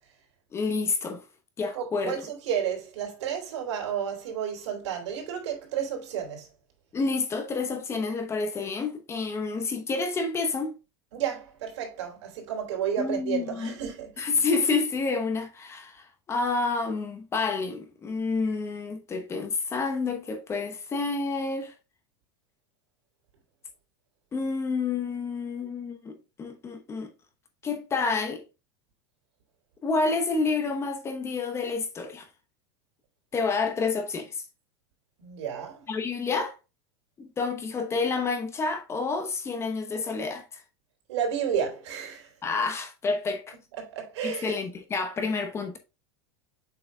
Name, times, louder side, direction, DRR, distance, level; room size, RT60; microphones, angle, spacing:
voice 1, 0.5-1.2 1.6-2.2 6.9-10.8 13.0-13.8 14.2-21.7 24.3-27.1 27.6-28.4 29.8-32.3 33.3-34.4 35.9-36.6 37.2-40.6 42.4-43.5 44.2-45.8, left 4 dB, 20° left, 1.0 m, -29 dB
voice 2, 1.7-6.5 11.1-14.3 35.2-35.8 41.1-42.3 43.8-44.6, right 8 dB, 80° right, 3.4 m, -31 dB
7.4 x 5.8 x 2.3 m
supercardioid pair, 155°, 15 cm